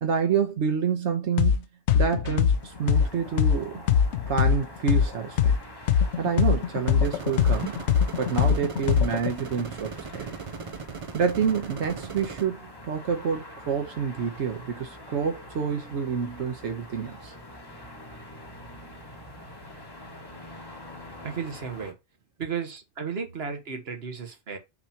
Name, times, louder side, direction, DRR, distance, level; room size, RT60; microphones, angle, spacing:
voice 1, 0.0-1.7 1.9-3.8 4.3-5.6 6.2-7.8 8.2-10.3 11.1-17.3, right 6 dB, 90° right, 1.2 m, -28 dB
sound 1, 1.4-1.6 1.9-5.6 5.9-9.3, left 8 dB, 85° left, 0.9 m, -21 dB
sound 2, 2.2-21.9, left 1 dB, 20° left, 1.1 m, -45 dB
sound 3, 7.0-12.5, right 5 dB, 45° right, 0.4 m, -39 dB
voice 2, 21.2-21.9 22.4-24.6, right 6 dB, 65° right, 1.5 m, -34 dB
6.6 x 2.8 x 5.8 m
omnidirectional pair, 1.2 m